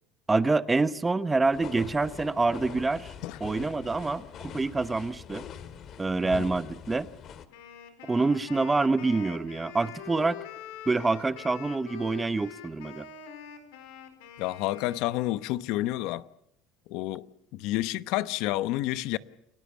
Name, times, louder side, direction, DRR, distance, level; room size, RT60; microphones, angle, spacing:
voice 1, 0.3-3.1 3.4-5.4 6.0-7.1 8.1-10.4 10.9-13.1, right 3 dB, 15° right, 0.9 m, -26 dB
sound 1, 1.5-7.5, left 8 dB, 45° left, 2.0 m, -43 dB
Wind instrument woodwind instrument, 7.5-15.7, left 8 dB, 90° left, 4.3 m, -45 dB
voice 2, 14.4-16.3 16.9-17.3 17.5-19.2, left 16 dB, 65° left, 0.9 m, -29 dB
29.0 x 18.5 x 7.2 m
cardioid pair, 135°, 0 cm